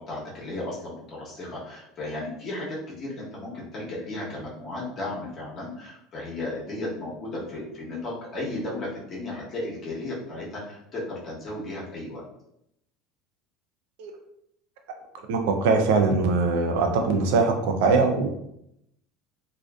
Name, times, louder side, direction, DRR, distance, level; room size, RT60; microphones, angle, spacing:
voice 1, 0.0-12.2, left 2 dB, 40° left, -5 dB, 0.9 m, -35 dB
voice 2, 15.3-18.3, right 4 dB, 80° right, 4 dB, 0.4 m, -22 dB
2.4 x 2.3 x 2.3 m, 0.77 s
supercardioid pair, 105°, 0 cm